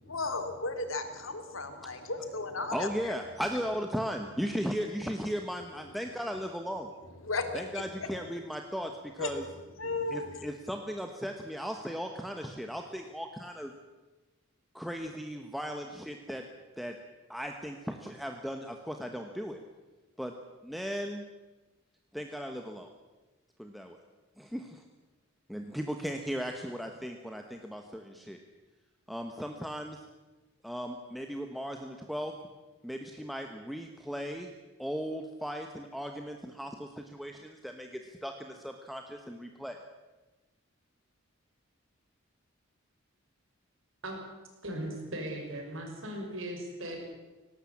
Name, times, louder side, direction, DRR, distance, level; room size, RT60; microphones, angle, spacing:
voice 1, 0.1-3.1 7.2-7.8 9.2-9.3 9.8-10.4, left 3 dB, 75° left, 8 dB, 2.6 m, -35 dB
voice 2, 2.7-6.9 7.5-9.5 10.1-13.7 14.7-16.4 16.8-17.0 17.3-19.6 20.2-20.3 20.6-21.2 22.1-22.9 23.6-24.0 24.4-24.8 25.5-28.4 29.1-30.0 30.6-32.3 32.8-34.5 34.8-39.8, equal, ahead, 4 dB, 1.1 m, -37 dB
voice 3, 44.6-47.0, right 1 dB, 70° right, 2 dB, 5.9 m, -38 dB
18.0 x 18.0 x 8.6 m, 1.2 s
head